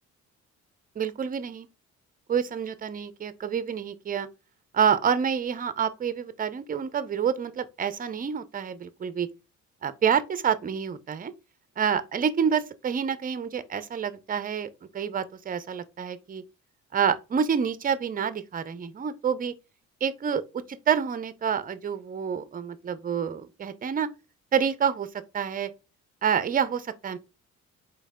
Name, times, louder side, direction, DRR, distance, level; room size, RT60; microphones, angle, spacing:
voice 1, 1.0-1.7 2.3-4.3 4.7-9.3 9.8-11.3 11.8-16.4 16.9-19.5 20.0-24.1 24.5-25.1 25.3-25.7 26.2-27.2, right 7 dB, 30° right, 0.5 m, -28 dB
4.5 x 3.2 x 3.5 m
cardioid pair, 90°, 30 cm